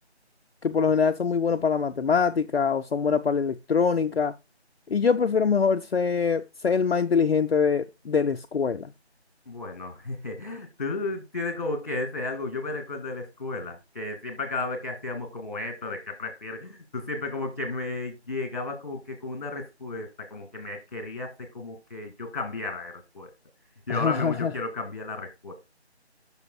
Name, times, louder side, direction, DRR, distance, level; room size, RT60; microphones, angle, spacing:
voice 1, 0.6-4.3 4.9-8.9 23.9-24.5, left 6 dB, 65° left, 0.5 m, -24 dB
voice 2, 9.5-23.3 23.9-25.5, left 3 dB, 35° left, 2.4 m, -33 dB
10.5 x 6.2 x 2.3 m
figure-of-eight pair, 170°, 34 cm